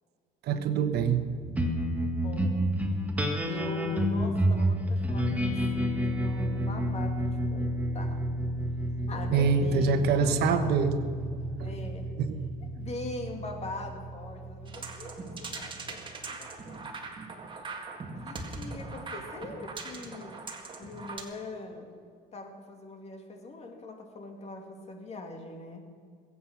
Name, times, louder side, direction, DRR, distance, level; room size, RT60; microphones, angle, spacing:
voice 1, 0.4-1.7 9.3-10.9 11.6-11.7 12.2-12.4, right 5 dB, 70° right, 9 dB, 1.2 m, -25 dB
sound 1, 1.6-16.2, equal, 10° right, 1.7 m, -30 dB
voice 2, 2.0-2.7 3.4-8.2 9.1-10.8 11.6-12.1 12.7-16.0 16.3-17.0 18.2-20.4 20.8-21.9 22.3-25.8, left 2 dB, 40° left, 4 dB, 2.4 m, -42 dB
sound 2, 14.7-21.2, right 3 dB, 30° right, 2.0 m, -41 dB
21.5 x 8.5 x 6.0 m, 2.2 s
cardioid pair, 110°, 17 cm